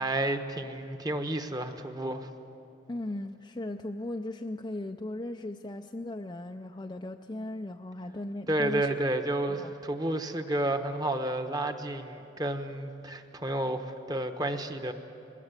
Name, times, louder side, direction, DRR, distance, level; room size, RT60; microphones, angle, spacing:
voice 1, 0.0-2.3 8.5-14.9, right 1 dB, 20° right, 7 dB, 1.1 m, -31 dB
voice 2, 2.9-8.9 9.6-9.7, left 1 dB, 20° left, 4 dB, 0.5 m, -37 dB
21.5 x 21.0 x 8.2 m, 2.8 s
head